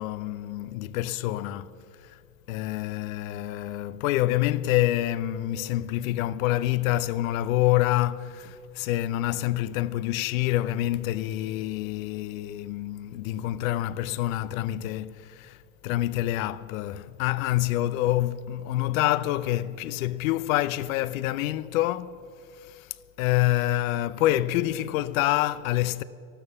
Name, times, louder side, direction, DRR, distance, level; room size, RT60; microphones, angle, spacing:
voice 1, 0.0-1.7 2.0-2.2 2.5-22.2 22.6-26.0, left 15 dB, 65° left, 0.7 m, -27 dB
12.5 x 12.5 x 7.1 m
hypercardioid pair, 95°, 43 cm